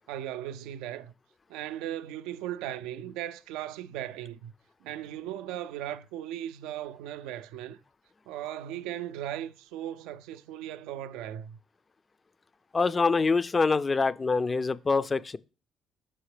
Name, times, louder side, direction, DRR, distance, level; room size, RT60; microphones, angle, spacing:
voice 1, 0.1-1.1 1.5-4.5 4.8-7.8 8.3-11.6, right 12 dB, 90° right, 0.3 m, -37 dB
voice 2, 12.7-15.4, left 4 dB, 30° left, 0.3 m, -25 dB
5.6 x 5.5 x 3.3 m
supercardioid pair, 80°, 0 cm